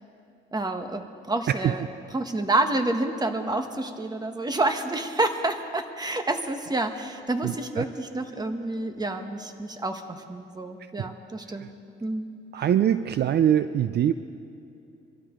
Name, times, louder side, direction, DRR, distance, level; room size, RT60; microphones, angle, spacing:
voice 1, 0.5-1.8 2.1-11.7 12.0-12.3, right 2 dB, 20° right, 6 dB, 1.3 m, -28 dB
voice 2, 7.4-7.8 11.0-11.1 11.6-11.7 12.5-14.1, right 10 dB, 55° right, 12 dB, 0.5 m, -23 dB
25.0 x 13.0 x 3.8 m, 2.5 s
cardioid pair, 90°, 20 cm